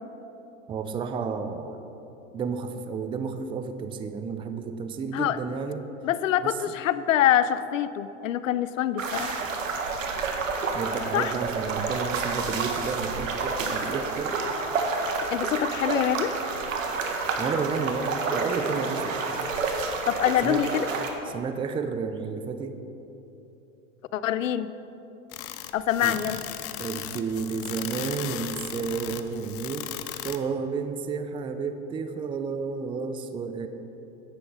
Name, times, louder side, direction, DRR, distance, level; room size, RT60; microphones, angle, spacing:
voice 1, 0.7-1.8 2.3-5.9 6.4-6.5 10.7-14.4 17.4-19.2 20.4-20.6 21.3-22.8 26.0-26.2 26.8-29.9 30.2-33.7, right 5 dB, 15° right, 9 dB, 0.4 m, -31 dB
voice 2, 6.0-9.4 11.1-11.3 15.3-16.3 20.1-20.9 24.1-24.7 25.7-26.4, left 11 dB, 85° left, 14 dB, 0.6 m, -25 dB
sound 1, 9.0-21.1, right 4 dB, 85° right, 1.3 m, -29 dB
sound 2, 25.3-30.4, left 13 dB, 40° left, 0.6 m, -37 dB
10.0 x 8.3 x 5.1 m, 3.0 s
hypercardioid pair, 110°, 38 cm